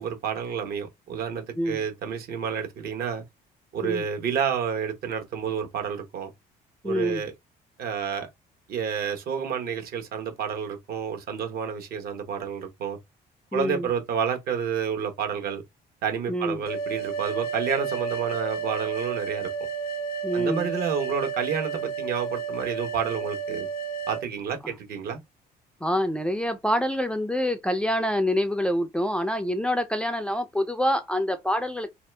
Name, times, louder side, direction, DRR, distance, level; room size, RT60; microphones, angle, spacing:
voice 1, 0.0-3.2 3.7-6.3 6.8-7.3 7.8-8.3 8.7-13.0 13.5-15.6 16.0-19.5 20.3-23.7 24.1-25.2, right 7 dB, 65° right, 1.1 m, -30 dB
voice 2, 6.8-7.3 13.5-13.9 16.3-16.6 20.2-20.7 24.6-24.7 25.8-31.9, equal, 5° left, 0.4 m, -26 dB
sound 1, 16.7-24.2, right 5 dB, 65° left, 0.6 m, -31 dB
2.8 x 2.4 x 3.2 m
cardioid pair, 110°, 17 cm